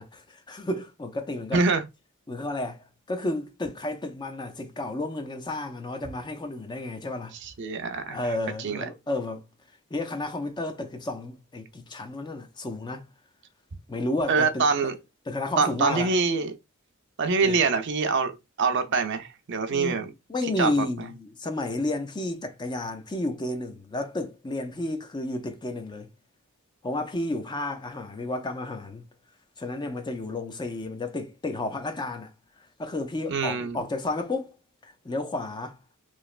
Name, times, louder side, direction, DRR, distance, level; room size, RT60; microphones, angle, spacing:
voice 1, 0.0-1.6 2.3-7.4 8.1-9.4 9.9-13.1 13.9-14.7 15.3-16.1 17.4-17.6 19.7-26.1 26.8-29.0 29.6-32.3 32.8-34.6 34.8-35.8, left 2 dB, 20° left, 0.4 m, -32 dB
voice 2, 1.5-1.8 7.4-8.2 8.6-8.8 14.3-14.9 15.6-16.6 17.2-18.3 18.6-20.1 20.6-20.9 33.3-33.8, right 4 dB, 55° right, 0.5 m, -24 dB
3.1 x 2.8 x 2.4 m
head